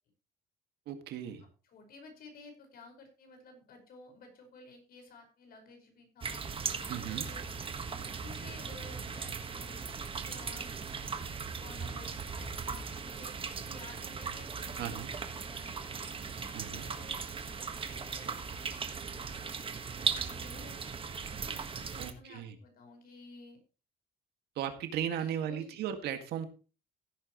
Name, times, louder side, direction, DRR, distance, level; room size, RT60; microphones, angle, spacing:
voice 1, 0.9-1.5 6.9-7.3 14.8-15.1 16.5-16.8 22.0-22.6 24.6-26.5, right 9 dB, 75° right, 7 dB, 2.0 m, -36 dB
voice 2, 1.7-6.5 7.0-7.6 7.9-15.0 15.3-16.2 16.6-17.2 17.6-20.8 21.3-23.6 25.2-25.8, left 3 dB, 60° left, 4 dB, 5.4 m, -54 dB
sound 1, 6.2-22.1, right 5 dB, 30° right, 1.5 m, -38 dB
15.5 x 9.3 x 3.1 m, 0.34 s
cardioid pair, 110°, 17 cm